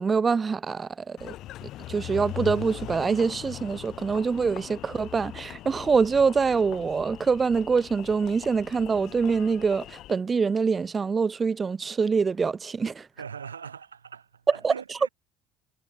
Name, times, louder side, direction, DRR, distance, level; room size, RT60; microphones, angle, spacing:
voice 1, 0.0-1.3 1.9-13.1 14.5-14.7, right 5 dB, 30° right, 0.5 m, -25 dB
Engine, 1.2-10.1, left 14 dB, 55° left, 1.6 m, -40 dB
voice 2, 13.2-15.1, right 7 dB, 80° right, 4.3 m, -41 dB
figure-of-eight pair, 60°, 0 cm